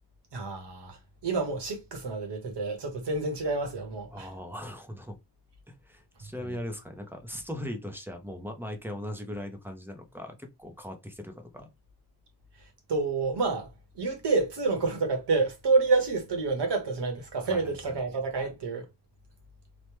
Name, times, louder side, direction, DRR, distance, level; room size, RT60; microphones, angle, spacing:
voice 1, 0.3-4.3 6.4-6.5 12.9-18.9, right 3 dB, 75° right, 1.1 m, -28 dB
voice 2, 4.1-5.2 5.7-11.7 17.5-18.0, left 1 dB, 5° right, 0.5 m, -39 dB
3.1 x 2.1 x 3.0 m
wide cardioid pair, 150°, 42 cm